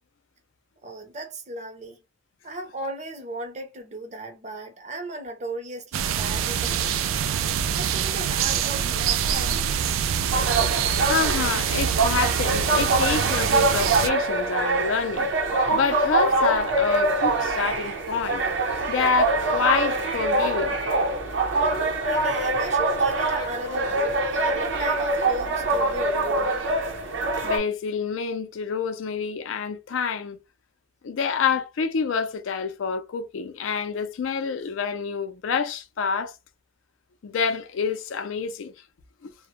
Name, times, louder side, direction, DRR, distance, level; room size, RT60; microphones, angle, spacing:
voice 1, 0.8-2.0 2.4-7.2 7.7-9.7 22.0-24.2 24.5-26.6, right 1 dB, 35° right, 0.5 m, -36 dB
sound 1, 5.9-14.1, right 8 dB, 90° right, 0.3 m, -25 dB
sound 2, 10.3-27.6, right 2 dB, 70° right, 0.7 m, -24 dB
voice 2, 11.1-15.3 15.7-18.4 18.9-20.8 27.4-30.4 31.0-36.3 37.2-38.7 39.2-39.3, left 5 dB, 80° left, 0.4 m, -27 dB
2.1 x 2.0 x 2.9 m
head